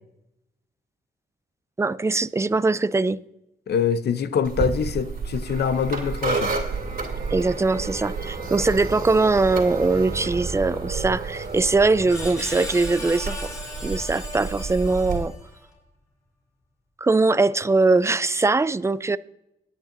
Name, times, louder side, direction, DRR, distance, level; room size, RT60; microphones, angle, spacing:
voice 1, 1.8-3.2 7.3-13.5 13.8-15.3 17.0-19.2, right 3 dB, 15° right, 0.4 m, -21 dB
voice 2, 3.7-6.5, left 7 dB, 70° left, 0.8 m, -24 dB
sound 1, 4.4-15.2, right 4 dB, 60° right, 2.4 m, -31 dB
Screech, 11.3-15.6, left 1 dB, 20° left, 3.9 m, -37 dB
20.5 x 8.9 x 2.6 m
cardioid pair, 80°, 18 cm